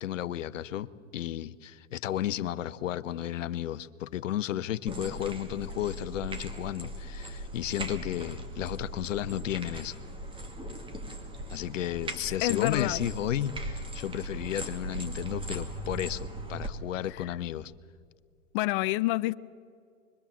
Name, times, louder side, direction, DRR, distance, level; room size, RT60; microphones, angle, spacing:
voice 1, 0.0-10.0 11.5-17.7, left 11 dB, 80° left, 0.9 m, -33 dB
sound 1, 4.9-16.7, right 1 dB, 15° right, 2.3 m, -39 dB
voice 2, 12.4-13.0 18.5-19.3, left 19 dB, 45° left, 0.7 m, -27 dB
25.5 x 22.5 x 7.2 m
hypercardioid pair, 120°, 38 cm